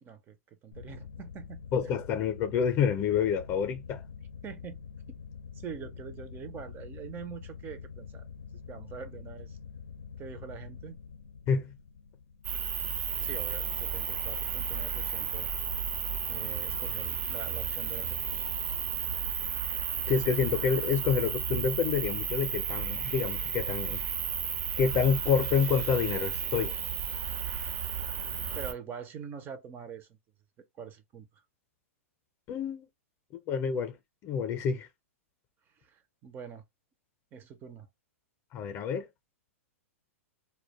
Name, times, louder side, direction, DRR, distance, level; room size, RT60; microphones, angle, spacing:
voice 1, 0.0-0.4 0.6-1.9 4.4-4.8 5.5-8.3 8.7-9.6 10.2-11.0 13.2-15.5 16.3-18.5 28.5-30.2 30.8-31.3 35.8-36.6 37.3-37.9, right 7 dB, 25° right, 0.5 m, -44 dB
sound 1, 0.7-14.0, left 6 dB, 85° left, 0.4 m, -46 dB
voice 2, 1.7-4.0 11.5-11.7 20.1-24.0 24.8-26.8 32.5-32.9 33.3-34.0 34.2-34.9 38.5-39.0, left 6 dB, 35° left, 0.5 m, -28 dB
sound 2, 12.4-28.7, right 7 dB, 65° right, 0.7 m, -33 dB
2.2 x 2.1 x 2.8 m
hypercardioid pair, 120°, 8 cm